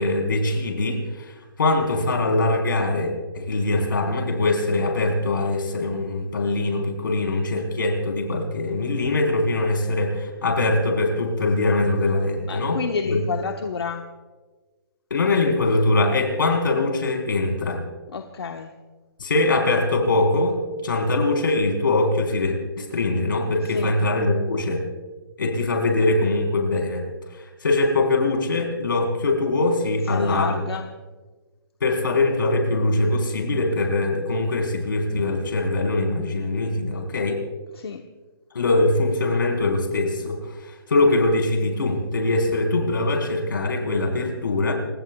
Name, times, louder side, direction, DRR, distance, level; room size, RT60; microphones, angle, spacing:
voice 1, 0.0-12.8 13.1-13.2 15.1-17.8 19.2-24.8 25.4-27.0 27.3-30.5 31.8-37.4 38.5-44.7, left 2 dB, 55° left, 2 dB, 4.3 m, -22 dB
voice 2, 12.5-14.1 18.1-18.7 23.6-24.0 30.0-30.9 37.7-38.0, left 5 dB, 80° left, 4 dB, 1.2 m, -30 dB
29.5 x 17.5 x 2.3 m, 1.3 s
hypercardioid pair, 180°, 13 cm